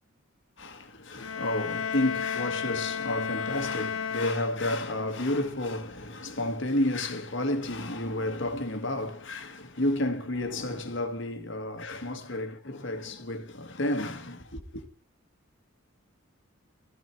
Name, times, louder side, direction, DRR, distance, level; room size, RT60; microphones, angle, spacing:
voice 1, 0.6-14.9, left 1 dB, 60° left, 1.9 m, -31 dB
sound 1, 1.2-5.0, left 6 dB, 85° left, 1.1 m, -33 dB
15.0 x 12.5 x 4.6 m
head